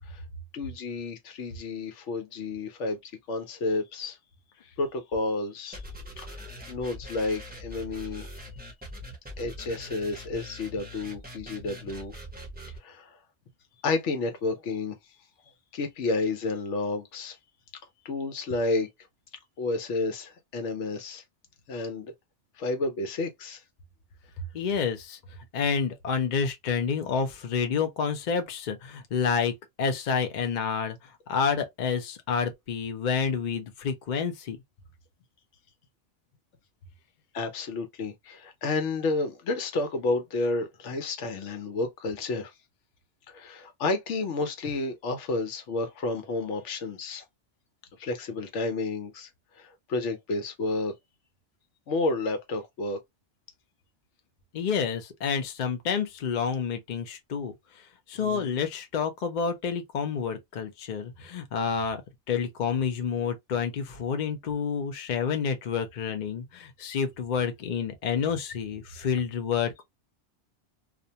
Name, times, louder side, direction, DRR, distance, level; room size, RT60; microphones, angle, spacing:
voice 1, 0.5-4.2 4.8-5.8 6.2-8.3 9.4-12.1 12.8-13.1 13.8-15.0 15.7-17.4 18.0-18.9 19.6-21.2 21.7-22.1 22.6-23.6 37.3-42.5 43.3-47.2 48.0-49.3 49.6-50.9 51.9-53.0 58.2-58.5, left 3 dB, 85° left, 1.0 m, -31 dB
sound 1, 5.7-12.8, equal, 10° right, 0.7 m, -42 dB
voice 2, 24.5-25.2 25.5-29.5 29.8-34.6 54.5-62.0 62.3-69.8, left 6 dB, 50° left, 0.6 m, -29 dB
2.5 x 2.1 x 2.7 m
omnidirectional pair, 1.2 m